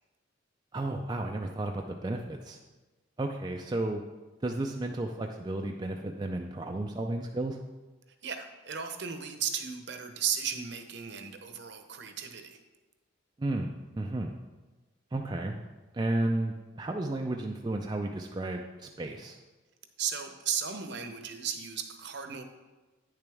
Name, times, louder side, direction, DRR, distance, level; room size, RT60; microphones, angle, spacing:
voice 1, 0.7-2.6 3.2-4.0 4.4-7.6 13.4-14.4 15.1-15.6 15.9-19.4, right 2 dB, 20° right, 2 dB, 0.3 m, -33 dB
voice 2, 8.2-12.6 20.0-22.4, right 7 dB, 55° right, 6 dB, 0.8 m, -35 dB
9.1 x 6.9 x 3.4 m, 1.2 s
head